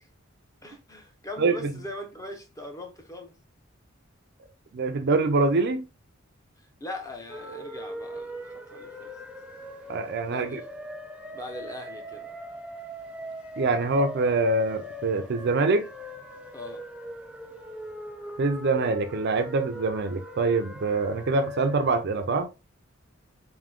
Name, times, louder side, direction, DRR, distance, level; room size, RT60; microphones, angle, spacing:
voice 1, 0.6-3.3 6.8-9.1 10.3-10.7 11.3-12.3 16.5-16.8, left 1 dB, 15° left, 0.8 m, -40 dB
voice 2, 1.4-1.7 4.7-5.9 9.9-10.6 13.6-15.9 18.4-22.5, right 3 dB, 55° right, 0.5 m, -25 dB
sound 1, 7.3-22.0, equal, 5° right, 0.5 m, -41 dB
3.7 x 2.6 x 3.5 m
head